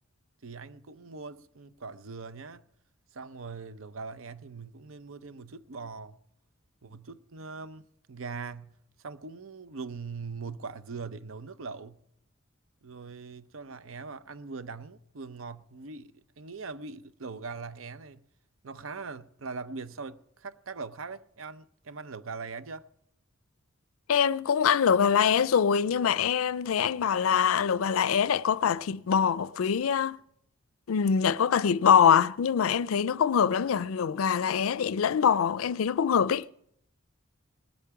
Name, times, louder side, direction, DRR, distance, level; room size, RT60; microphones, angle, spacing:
voice 1, 0.4-2.6 3.1-6.2 6.8-12.0 12.8-18.2 18.6-22.9, right 4 dB, 80° right, 0.7 m, -41 dB
voice 2, 24.1-30.2 30.9-36.5, left 7 dB, 90° left, 0.4 m, -24 dB
19.5 x 8.4 x 5.8 m
head